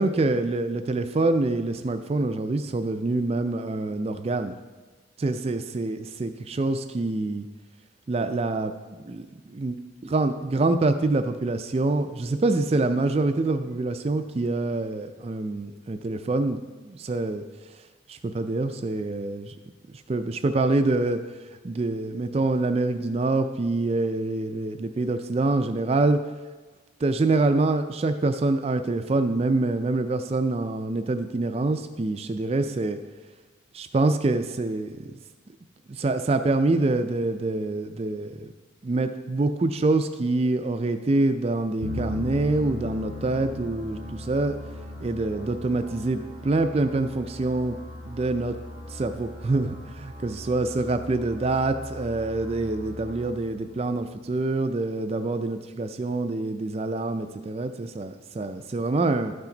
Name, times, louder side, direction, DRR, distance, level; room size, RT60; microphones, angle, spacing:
voice 1, 0.0-4.5 5.2-7.5 8.1-9.8 10.1-16.6 16.8-17.4 18.1-19.5 20.1-21.2 21.6-26.2 27.0-33.0 33.7-34.9 35.9-38.5 38.8-44.6 45.0-47.8 48.1-48.6 48.9-59.3, right 2 dB, 30° right, 8 dB, 0.3 m, -25 dB
sound 1, 41.8-54.5, left 1 dB, 50° left, 1.8 m, -39 dB
12.5 x 5.8 x 3.9 m, 1.3 s
head